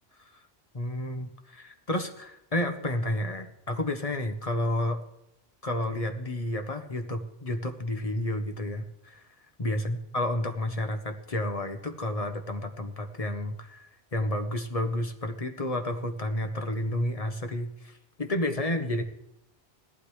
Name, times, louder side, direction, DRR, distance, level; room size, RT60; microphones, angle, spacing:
voice 1, 0.7-5.0 5.6-9.2 9.6-17.9 18.2-19.0, left 1 dB, 35° left, 6 dB, 1.2 m, -31 dB
17.0 x 12.0 x 3.2 m, 0.82 s
omnidirectional pair, 1.1 m